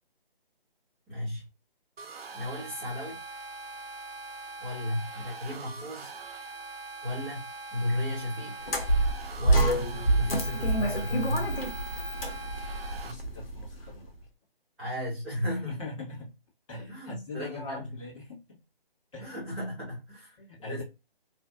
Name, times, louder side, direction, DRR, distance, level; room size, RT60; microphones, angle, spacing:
voice 1, 1.1-1.5 2.3-3.2 4.6-6.1 7.0-8.6 9.4-9.8 10.2-11.6 14.8-15.7 16.8-17.8 19.2-20.8, left 1 dB, 5° right, 0.9 m, -34 dB
sound 1, 2.0-13.1, right 3 dB, 75° right, 0.6 m, -42 dB
sound 2, 8.6-13.9, right 1 dB, 70° left, 1.1 m, -27 dB
voice 2, 12.9-14.3 15.5-16.3 16.7-18.6 19.1-19.4 20.4-20.8, left 2 dB, 30° left, 1.5 m, -41 dB
3.2 x 2.5 x 2.2 m
figure-of-eight pair, 160°, 30 cm